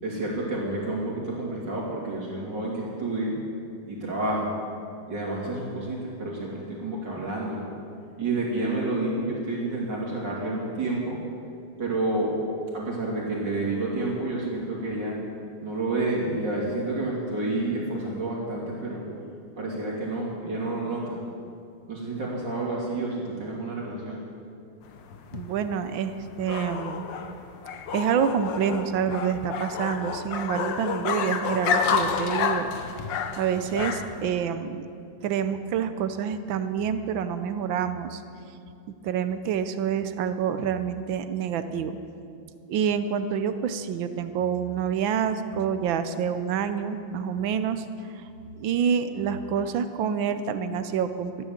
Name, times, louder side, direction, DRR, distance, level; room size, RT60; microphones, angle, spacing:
voice 1, 0.0-3.3 3.9-4.5 5.1-7.7 8.2-11.2 11.8-12.3 12.7-15.2 15.6-19.0 19.6-21.2 21.9-24.2, right 2 dB, 55° right, -4 dB, 3.4 m, -29 dB
sound 1, 24.9-34.3, left 6 dB, 65° left, 1.5 m, -30 dB
voice 2, 25.3-27.0 27.9-32.7 33.4-34.9 35.2-38.2 39.0-42.0 42.7-47.8 48.6-51.3, right 7 dB, 70° right, 10 dB, 1.4 m, -27 dB
13.5 x 11.0 x 7.3 m, 2.5 s
omnidirectional pair, 2.3 m